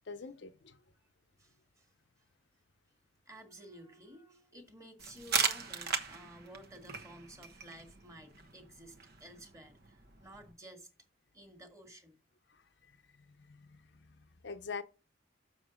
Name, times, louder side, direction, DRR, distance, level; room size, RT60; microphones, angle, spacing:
voice 1, 0.1-0.8 12.5-12.6 13.5-14.1 14.4-14.8, left 5 dB, 70° left, 0.8 m, -44 dB
voice 2, 1.4-1.9 3.3-10.9 11.3-12.2, right 1 dB, 15° right, 1.8 m, -53 dB
sound 1, 5.0-10.5, right 6 dB, 60° right, 1.2 m, -38 dB
7.2 x 6.4 x 5.1 m
head